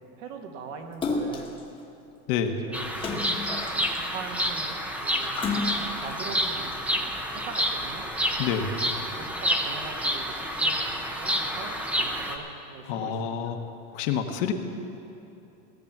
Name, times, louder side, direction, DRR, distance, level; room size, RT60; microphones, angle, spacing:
voice 1, 0.2-1.6 2.4-3.0 3.7-4.7 5.0-5.5 6.0-8.0 9.1-13.5, right 5 dB, 65° right, 4 dB, 1.6 m, -42 dB
Splash splatter, 1.0-1.6 3.0-4.2 5.3-6.1 6.7-6.8, left 3 dB, 15° left, 1.1 m, -31 dB
Bird vocalization bird call bird song, 2.7-12.4, equal, 5° right, 0.5 m, -29 dB
voice 2, 8.4-8.7 12.9-13.6 13.9-14.5, left 8 dB, 50° left, 5 dB, 1.1 m, -27 dB
17.5 x 6.9 x 7.3 m, 2.9 s
supercardioid pair, 155°, 37 cm